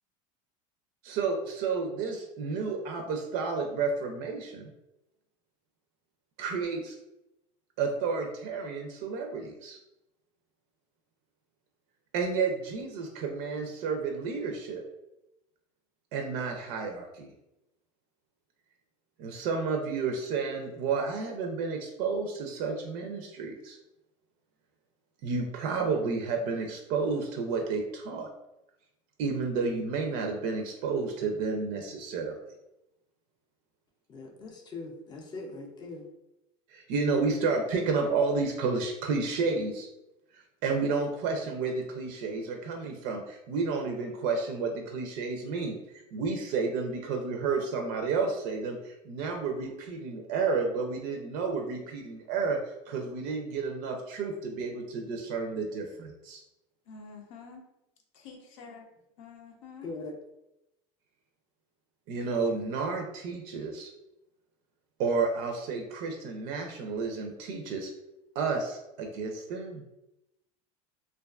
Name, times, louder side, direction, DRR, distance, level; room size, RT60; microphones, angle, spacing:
voice 1, 1.0-4.7 6.4-7.0 7.8-9.8 12.1-14.8 16.1-17.3 19.2-23.8 25.2-28.3 29.2-32.4 36.7-39.9 40.3-52.6 52.9-56.4 62.1-63.9 65.0-67.9 68.4-69.8, right 4 dB, 65° right, 3 dB, 0.4 m, -31 dB
voice 2, 34.1-36.1 59.8-60.2, left 3 dB, 25° left, 1 dB, 0.4 m, -41 dB
voice 3, 56.9-57.6 58.2-58.9 59.2-59.9, left 5 dB, 90° left, 2 dB, 0.6 m, -47 dB
2.4 x 2.3 x 2.3 m, 0.91 s
supercardioid pair, 135°, 16 cm